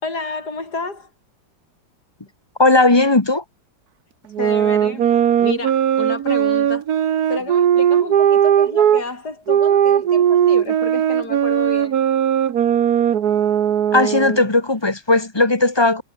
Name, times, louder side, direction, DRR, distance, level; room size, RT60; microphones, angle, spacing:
voice 1, 0.0-1.1 4.4-5.1 5.4-6.8 7.3-12.0, left 3 dB, 60° left, 5.7 m, -30 dB
voice 2, 2.6-3.4 13.9-16.0, left 2 dB, 15° left, 1.4 m, -16 dB
sound 1, 4.3-9.0 9.5-14.4, right 9 dB, 60° right, 1.5 m, -17 dB
omnidirectional pair, 2.0 m